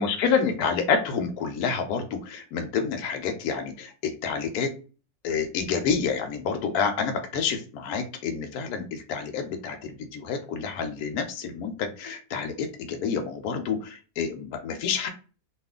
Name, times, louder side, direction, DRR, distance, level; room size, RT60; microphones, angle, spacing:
voice 1, 0.0-4.7 5.2-15.1, left 6 dB, 80° left, 5 dB, 1.1 m, -28 dB
2.9 x 2.4 x 3.5 m, 0.35 s
omnidirectional pair, 1.6 m